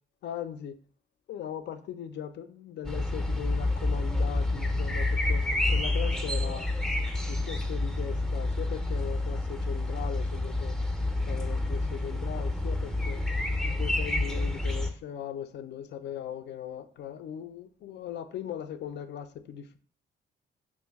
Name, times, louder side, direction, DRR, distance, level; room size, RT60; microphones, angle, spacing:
voice 1, 0.2-0.8 1.3-6.7 7.2-10.8 11.2-13.2 13.6-19.8, left 9 dB, 60° left, 0.4 m, -39 dB
sound 1, 2.8-14.9, left 2 dB, 5° left, 0.5 m, -29 dB
3.0 x 2.5 x 3.4 m
cardioid pair, 90°, 20 cm